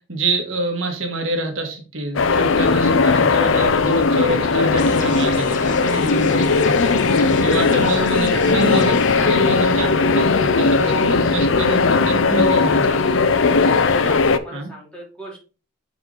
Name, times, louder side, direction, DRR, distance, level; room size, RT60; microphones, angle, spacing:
voice 1, 0.1-13.0 14.0-14.2 14.5-14.7, right 2 dB, 80° right, 4 dB, 1.7 m, -26 dB
sound 1, 2.2-14.4, left 4 dB, 75° left, 0.6 m, -17 dB
sound 2, 4.8-9.2, left 3 dB, 40° left, 1.0 m, -34 dB
voice 2, 7.7-9.5 13.8-15.4, left 1 dB, 5° left, -4 dB, 3.0 m, -36 dB
6.4 x 4.8 x 3.9 m, 0.35 s
head